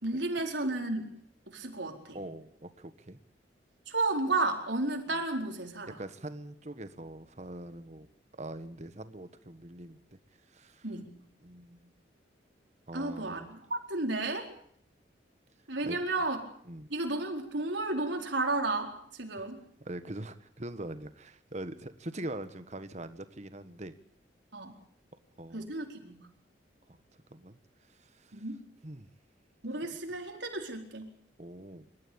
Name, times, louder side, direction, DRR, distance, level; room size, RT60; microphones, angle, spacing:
voice 1, 0.0-1.1 1.5-2.2 3.9-6.0 10.8-11.1 12.9-14.5 15.7-16.4 16.9-19.6 24.5-24.7 25.5-26.3 28.3-28.6 29.6-31.1, right 2 dB, 75° right, 3 dB, 4.4 m, -32 dB
voice 2, 2.1-3.2 5.1-5.2 6.0-8.1 8.4-10.0 10.5-10.8 11.4-11.9 12.9-13.5 15.8-16.0 16.7-16.9 19.4-19.5 19.8-23.9 25.4-25.7 27.3-27.6 28.2-28.4 28.8-29.1 31.4-31.8, right 1 dB, 40° right, 11 dB, 1.5 m, -43 dB
26.5 x 13.5 x 8.8 m, 0.64 s
head